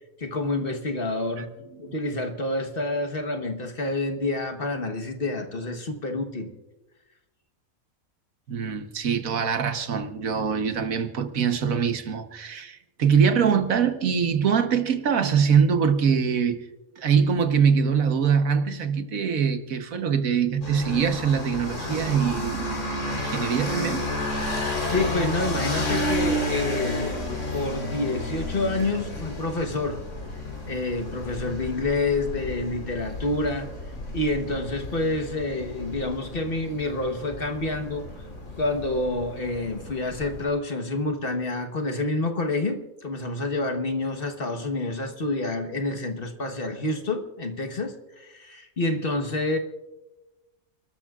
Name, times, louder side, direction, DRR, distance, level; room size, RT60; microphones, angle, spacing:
voice 1, 0.2-1.5 1.8-6.5 24.7-27.2 27.5-30.0 30.6-33.7 34.1-38.1 38.6-49.6, left 2 dB, 40° left, 1.4 m, -28 dB
voice 2, 8.5-16.6 17.0-24.0, right 6 dB, 75° right, 1.5 m, -23 dB
sound 1, 20.6-40.4, left 1 dB, 85° left, 3.9 m, -32 dB
29.5 x 13.0 x 2.4 m
omnidirectional pair, 1.5 m